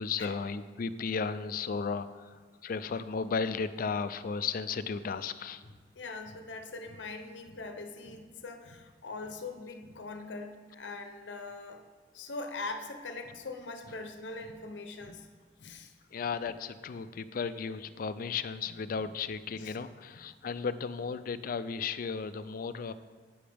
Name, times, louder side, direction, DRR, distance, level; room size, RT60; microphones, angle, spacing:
voice 1, 0.0-5.6 16.1-22.9, left 5 dB, 50° left, 13 dB, 0.4 m, -35 dB
voice 2, 5.6-11.8 12.1-15.3 15.6-15.9 19.5-19.8, left 3 dB, 90° left, 6 dB, 0.7 m, -42 dB
10.0 x 8.7 x 3.4 m, 1.5 s
head